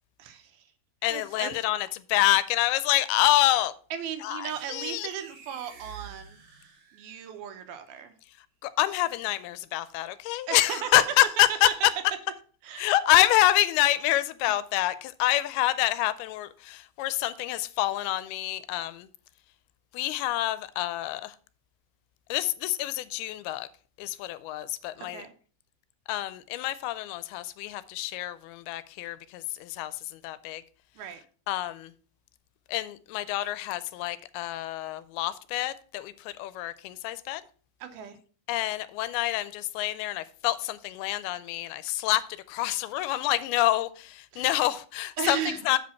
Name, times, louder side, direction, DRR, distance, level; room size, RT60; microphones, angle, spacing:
voice 1, 0.2-0.5 1.1-1.5 3.9-6.4 6.9-8.1 10.5-11.0 11.6-11.7 12.6-12.9 25.1-25.3 31.0-31.2 37.8-38.2 44.3-44.5 45.2-45.6, right 9 dB, 75° right, 2.7 m, -36 dB
voice 2, 1.0-3.7 4.2-5.1 8.6-11.7 12.8-19.1 19.9-21.3 22.3-23.7 24.0-25.2 26.1-29.9 30.2-30.6 31.5-31.9 32.7-37.4 38.5-42.2 42.5-45.8, left 15 dB, 85° left, 2.5 m, -27 dB
sound 1, 4.5-7.3, right 7 dB, 50° right, 2.0 m, -49 dB
7.7 x 5.2 x 5.6 m
omnidirectional pair, 4.4 m